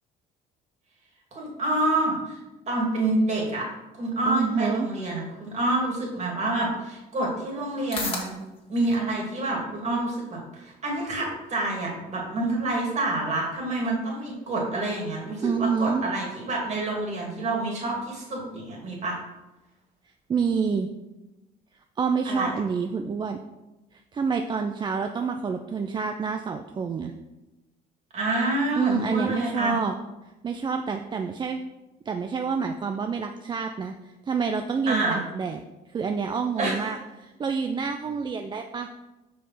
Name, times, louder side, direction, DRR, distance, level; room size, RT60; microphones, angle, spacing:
voice 1, 1.3-2.4 2.7-3.7 4.0-8.3 8.7-19.2 22.3-22.5 28.1-29.8 34.9-35.2 36.6-36.8, right 2 dB, 40° right, -2 dB, 2.3 m, -27 dB
voice 2, 4.3-4.9 15.4-16.0 20.3-20.9 22.0-23.4 23.9-27.1 28.8-29.9 30.4-31.6 32.1-35.6 35.9-38.9, right 5 dB, 25° right, 5 dB, 0.4 m, -28 dB
sound 1, 7.3-23.4, left 3 dB, 35° left, 1.7 m, -46 dB
5.1 x 4.6 x 5.6 m, 1.0 s
cardioid pair, 110°, 17 cm